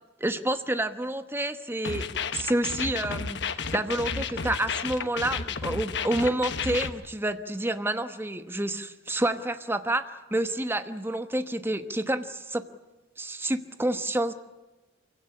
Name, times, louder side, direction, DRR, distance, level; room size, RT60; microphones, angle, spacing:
voice 1, 0.2-2.1 2.3-12.6 13.2-14.3, right 1 dB, 10° right, 10 dB, 1.0 m, -29 dB
sound 1, 1.8-6.9, left 5 dB, 60° left, 1.2 m, -32 dB
24.5 x 16.5 x 9.7 m, 1.1 s
head